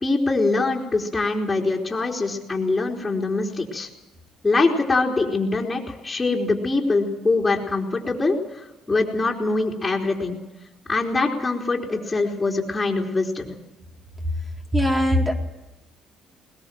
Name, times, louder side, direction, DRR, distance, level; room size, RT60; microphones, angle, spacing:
voice 1, 0.0-3.9 4.4-10.4 10.9-13.4, left 3 dB, 20° left, -2 dB, 3.7 m, -23 dB
voice 2, 14.7-15.4, equal, 15° right, 1 dB, 3.9 m, -20 dB
21.0 x 20.5 x 7.7 m, 1.0 s
cardioid pair, 105°, 0 cm